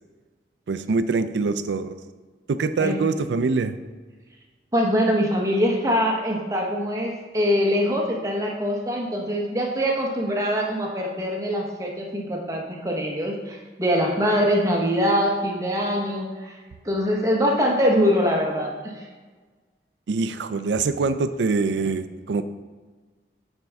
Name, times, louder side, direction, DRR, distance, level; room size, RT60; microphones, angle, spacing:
voice 1, 0.7-2.0 2.5-3.8 20.1-22.5, right 4 dB, 85° right, 11 dB, 0.4 m, -24 dB
voice 2, 4.7-16.5 16.8-19.0, equal, 20° right, -1 dB, 0.9 m, -23 dB
9.2 x 4.4 x 3.5 m, 1.4 s
head